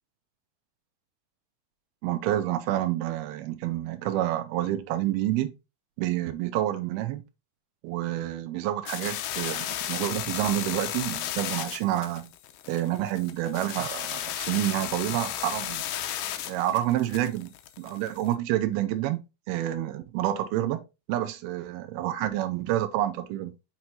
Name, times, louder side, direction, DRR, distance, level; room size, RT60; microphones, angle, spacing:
voice 1, 2.0-5.5 6.0-7.2 7.8-12.3 12.7-15.8 16.5-19.2 19.5-20.8 21.1-23.5, right 13 dB, 85° right, 2.5 m, -28 dB
sound 1, 8.9-18.3, left 11 dB, 80° left, 1.9 m, -34 dB
6.4 x 6.0 x 2.6 m
omnidirectional pair, 4.6 m